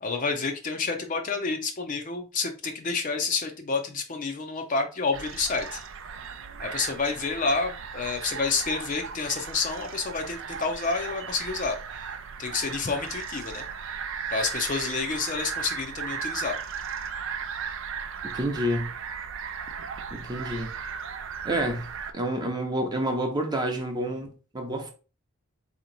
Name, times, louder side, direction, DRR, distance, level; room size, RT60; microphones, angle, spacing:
voice 1, 0.0-5.8 6.6-11.8 12.4-13.6 14.3-16.6, left 4 dB, 35° left, 0.5 m, -29 dB
sound 1, 5.1-22.1, right 6 dB, 60° right, 0.5 m, -36 dB
voice 2, 18.2-18.9 20.1-20.7 21.4-21.9 22.1-24.9, right 1 dB, 20° right, 0.7 m, -29 dB
4.2 x 2.9 x 3.8 m
head